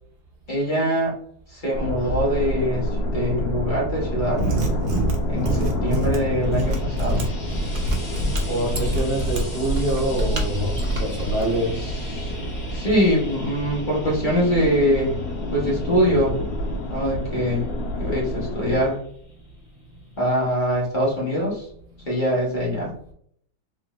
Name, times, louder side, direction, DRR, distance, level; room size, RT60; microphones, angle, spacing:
voice 1, 0.5-1.2 1.5-4.4 5.3-7.3 11.7-12.3 12.7-15.2 15.5-16.4 16.9-17.7 18.0-19.0 20.2-21.7 22.1-22.9, equal, 30° left, -5 dB, 1.1 m, -23 dB
sound 1, 1.7-18.9, left 1 dB, 75° left, 1.3 m, -29 dB
Mechanisms, 4.3-11.4, right 1 dB, 80° right, 0.4 m, -26 dB
Frying (food), 6.0-19.4 20.4-20.5, left 2 dB, 50° left, 1.8 m, -43 dB
voice 2, 8.5-11.7, right 2 dB, 40° right, -1 dB, 0.9 m, -26 dB
3.7 x 3.4 x 2.4 m, 0.64 s
omnidirectional pair, 2.0 m